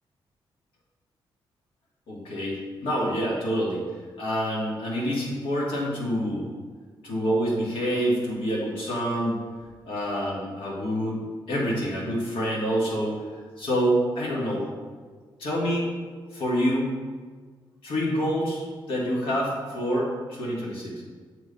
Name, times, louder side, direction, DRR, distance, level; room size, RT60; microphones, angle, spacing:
voice 1, 2.1-3.8 4.2-6.5 7.0-9.4 9.9-11.2 11.5-13.2 13.6-14.7 15.4-15.9 16.3-17.0 17.8-21.0, equal, 90° left, -4 dB, 1.8 m, -27 dB
6.9 x 3.2 x 5.4 m, 1.5 s
cardioid pair, 105°, 9 cm